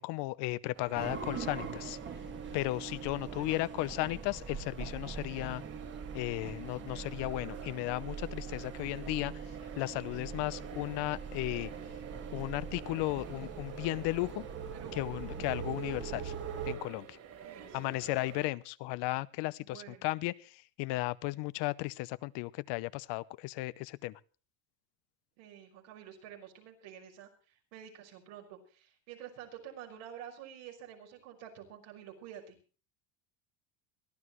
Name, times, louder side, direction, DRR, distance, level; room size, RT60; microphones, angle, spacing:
voice 1, 0.0-2.0 2.5-5.6 6.1-9.4 9.8-11.7 12.3-14.4 14.9-16.3 16.7-17.2 17.7-24.1, left 20 dB, 65° left, 17 dB, 0.9 m, -35 dB
sound 1, 0.7-18.5, right 7 dB, 45° right, 3.7 m, -50 dB
sound 2, 1.0-16.8, right 6 dB, 25° right, 1.7 m, -42 dB
voice 2, 2.9-3.6 14.7-15.0 15.4-15.6 17.4-18.0 19.6-20.1 25.4-27.3 27.7-32.6, right 10 dB, 75° right, 2 dB, 5.6 m, -49 dB
22.5 x 14.5 x 3.2 m, 0.37 s
cardioid pair, 145°, 45 cm